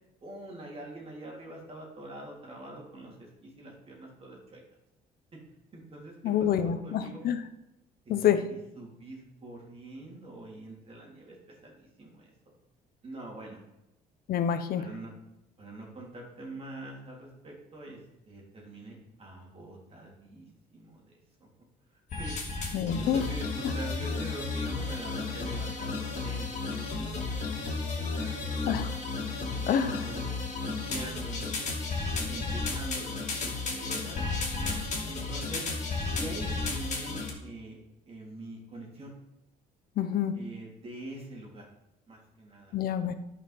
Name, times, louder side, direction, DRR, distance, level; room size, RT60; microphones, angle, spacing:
voice 1, 0.2-4.6 5.3-5.4 5.7-7.2 8.0-11.4 11.6-12.3 13.0-13.6 14.8-15.1 15.6-18.0 18.2-21.0 22.2-27.1 27.5-28.8 29.4-30.3 30.6-31.6 32.3-34.2 35.1-35.7 36.1-37.8 38.1-39.1 40.3-41.7 42.1-42.8, right 2 dB, 35° right, -2 dB, 3.3 m, -44 dB
voice 2, 6.2-7.4 8.1-8.4 14.3-14.8 22.7-23.2 23.6-23.7 28.7-28.9 29.7-30.0 40.0-40.4 42.7-43.1, left 9 dB, 65° left, 10 dB, 1.0 m, -27 dB
sound 1, 22.1-37.3, left 3 dB, 45° left, 2.8 m, -33 dB
11.0 x 5.7 x 5.9 m, 0.88 s
cardioid pair, 110°, 17 cm